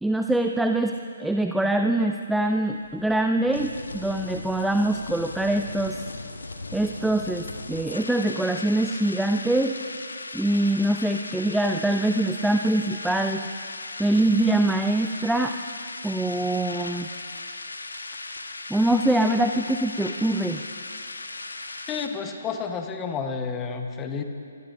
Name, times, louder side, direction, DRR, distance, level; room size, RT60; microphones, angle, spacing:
voice 1, 0.0-6.0 6.7-9.8 10.3-13.4 14.0-15.5 16.0-17.1 18.7-20.6, right 1 dB, ahead, 5 dB, 0.4 m, -24 dB
sound 1, 2.4-22.1, left 3 dB, 65° left, 1.3 m, -38 dB
voice 2, 21.9-24.2, left 5 dB, 15° left, 6 dB, 1.2 m, -30 dB
26.5 x 20.5 x 2.7 m, 2.4 s
figure-of-eight pair, 135°, 0 cm